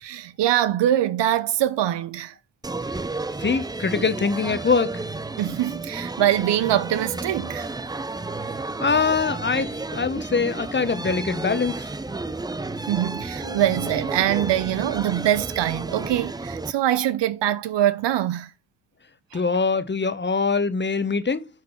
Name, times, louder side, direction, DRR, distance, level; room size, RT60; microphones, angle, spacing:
voice 1, 0.0-2.3 5.4-7.7 12.9-18.5 19.3-19.4, right 12 dB, 75° right, 0.9 m, -23 dB
sound 1, 2.6-16.7, right 3 dB, 10° right, 0.4 m, -32 dB
voice 2, 3.4-5.0 8.4-8.5 8.8-11.9 19.3-21.5, left 4 dB, 25° left, 1.1 m, -23 dB
sound 2, 13.4-16.0, right 1 dB, 40° right, 4.7 m, -41 dB
9.2 x 3.7 x 5.8 m
cardioid pair, 85°, 43 cm